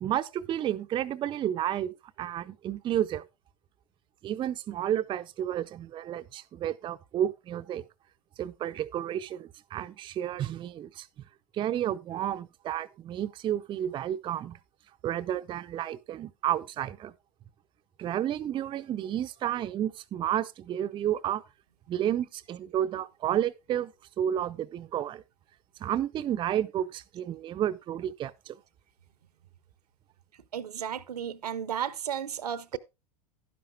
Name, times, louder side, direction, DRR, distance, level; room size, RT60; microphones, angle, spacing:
voice 1, 0.0-3.2 4.2-7.8 8.4-11.1 11.5-14.6 15.0-17.1 18.0-21.4 21.9-25.2 25.8-28.6, right 11 dB, 25° right, 0.4 m, -31 dB
voice 2, 30.5-32.8, right 9 dB, 80° right, 0.7 m, -33 dB
11.5 x 10.5 x 2.2 m
figure-of-eight pair, 90°, 20 cm